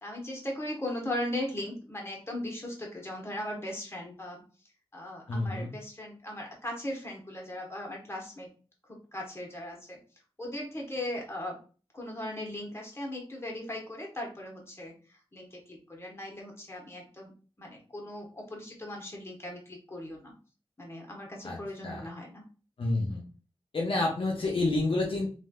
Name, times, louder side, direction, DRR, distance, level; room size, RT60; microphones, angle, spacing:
voice 1, 0.0-4.4 4.9-8.5 9.1-10.0 10.4-11.6 11.9-14.9 15.3-17.3 17.6-20.3 20.8-22.4, left 1 dB, 25° left, -1 dB, 1.2 m, -38 dB
voice 2, 5.3-5.7 21.4-21.6 21.8-22.1 22.8-23.2 23.7-25.3, left 2 dB, 60° left, -2 dB, 0.6 m, -29 dB
3.1 x 2.5 x 2.3 m, 0.37 s
cardioid pair, 55°, 10 cm